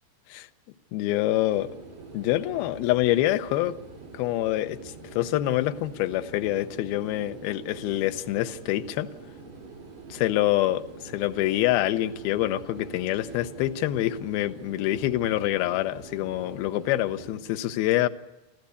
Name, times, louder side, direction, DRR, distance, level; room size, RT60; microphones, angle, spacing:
voice 1, 0.9-1.7 2.1-3.8 4.1-9.1 10.1-18.1, left 15 dB, 75° left, 2.4 m, -26 dB
sound 1, 1.5-17.3, right 3 dB, 50° right, 6.1 m, -44 dB
26.5 x 15.0 x 8.3 m
omnidirectional pair, 5.0 m